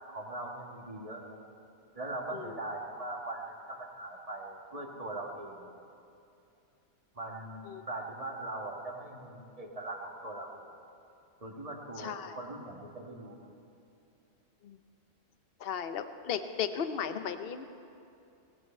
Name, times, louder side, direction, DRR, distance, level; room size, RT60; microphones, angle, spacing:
voice 1, 0.1-1.4 1.9-5.7 7.1-10.7 11.4-13.5, right 2 dB, 30° right, 0 dB, 1.8 m, -41 dB
voice 2, 12.0-12.4 14.6-14.8 15.6-17.6, left 7 dB, 55° left, 10 dB, 0.9 m, -36 dB
19.5 x 16.0 x 4.5 m, 2.6 s
omnidirectional pair, 1.3 m